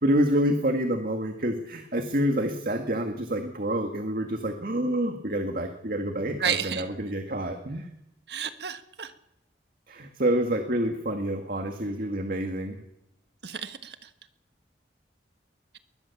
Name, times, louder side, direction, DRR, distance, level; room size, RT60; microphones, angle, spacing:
voice 1, 0.0-7.9 9.9-12.8, right 1 dB, 50° right, 5 dB, 2.0 m, -27 dB
voice 2, 6.4-6.9 8.3-9.1 13.4-13.9, right 7 dB, 70° right, 9 dB, 1.4 m, -31 dB
21.5 x 20.0 x 7.2 m, 0.84 s
head